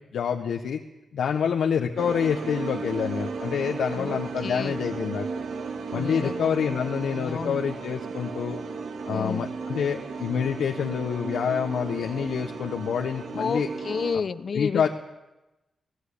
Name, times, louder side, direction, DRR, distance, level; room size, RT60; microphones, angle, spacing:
voice 1, 0.1-0.8 1.1-5.3 5.9-8.6 9.1-13.7 14.5-14.9, left 7 dB, 90° left, 2 dB, 1.5 m, -27 dB
sound 1, 2.0-14.2, right 5 dB, 85° right, 2.5 m, -34 dB
voice 2, 4.0-4.8 5.9-6.5 7.1-7.6 9.1-9.5 13.3-14.9, left 5 dB, 55° left, 15 dB, 0.9 m, -31 dB
25.5 x 18.0 x 8.7 m, 0.99 s
cardioid pair, 100°, 0 cm